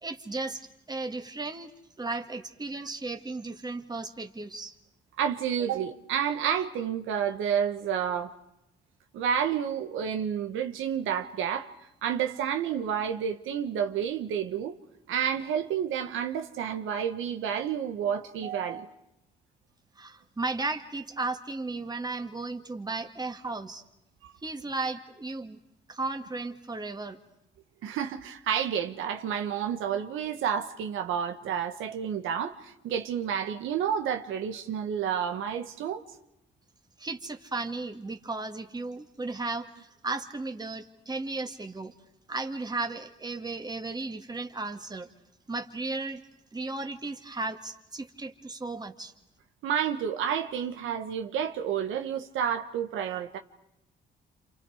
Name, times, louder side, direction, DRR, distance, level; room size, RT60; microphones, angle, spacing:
voice 1, 0.0-0.6 0.9-1.7 2.0-4.7 20.0-23.8 24.4-25.6 25.9-27.2 37.0-41.9 42.3-45.1 45.5-46.2 46.5-49.1, right 3 dB, 20° right, 2.1 m, -35 dB
voice 2, 5.2-8.3 9.1-11.7 12.0-14.8 15.1-18.9 24.2-24.3 27.8-36.0 49.6-53.4, right 8 dB, 85° right, 1.5 m, -30 dB
28.5 x 28.0 x 5.0 m
cardioid pair, 90°, 20 cm